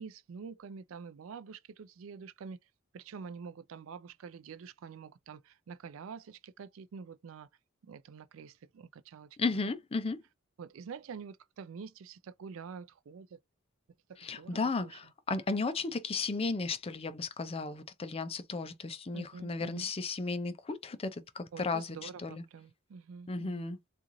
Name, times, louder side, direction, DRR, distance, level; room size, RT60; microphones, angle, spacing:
voice 1, 0.0-2.6 2.9-7.5 7.8-9.3 10.6-13.4 14.1-14.9 19.1-19.9 21.5-23.7, right 5 dB, 75° right, 0.4 m, -47 dB
voice 2, 9.4-10.2 14.2-22.4 23.3-23.8, left 3 dB, 30° left, 0.5 m, -34 dB
3.7 x 2.5 x 3.0 m
head